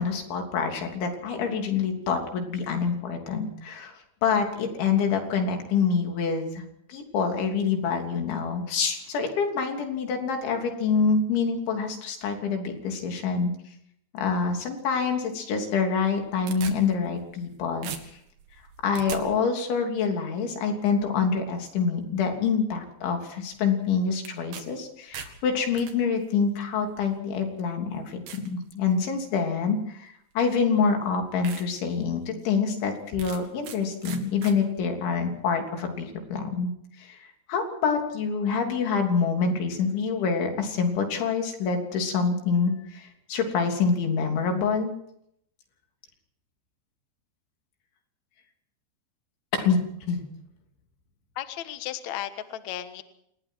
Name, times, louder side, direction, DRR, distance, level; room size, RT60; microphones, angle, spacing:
voice 1, 0.0-3.9 4.2-6.6 6.9-13.5 14.1-17.9 18.8-44.9 49.5-49.8 50.1-50.3, left 5 dB, 85° left, 3 dB, 5.6 m, -26 dB
sound 1, 16.0-17.5 17.8-19.2 24.2-24.6 25.0-25.9 26.8-26.9 27.5-27.6 28.3-28.5 29.0-29.4 30.5-30.6 31.0-31.1 31.4-31.7 32.1-32.2 33.2-33.8 34.0-34.6, right 8 dB, 60° right, 3.5 m, -40 dB
voice 2, 51.4-53.0, left 12 dB, 65° left, 9 dB, 1.9 m, -34 dB
27.5 x 20.0 x 4.7 m, 0.73 s
omnidirectional pair, 5.2 m